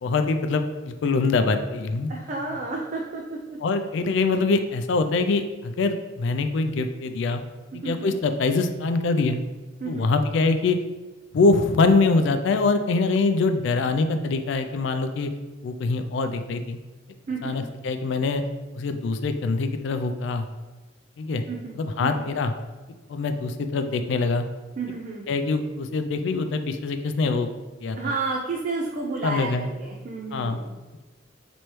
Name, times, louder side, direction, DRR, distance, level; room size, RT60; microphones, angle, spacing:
voice 1, 0.0-2.1 3.6-7.4 7.8-9.4 9.9-10.8 11.3-15.3 15.6-16.8 17.4-18.4 18.7-20.5 21.2-21.4 21.7-22.5 23.1-24.4 25.3-27.5 27.8-28.0 29.2-29.7 30.3-30.6, left 3 dB, 60° left, 8 dB, 0.3 m, -24 dB
voice 2, 2.1-3.6 7.8-8.2 9.8-10.1 17.3-17.6 21.5-21.7 22.0-22.3 24.8-25.3 28.0-30.8, right 3 dB, 40° right, 0 dB, 0.4 m, -31 dB
3.1 x 3.0 x 4.4 m, 1.2 s
head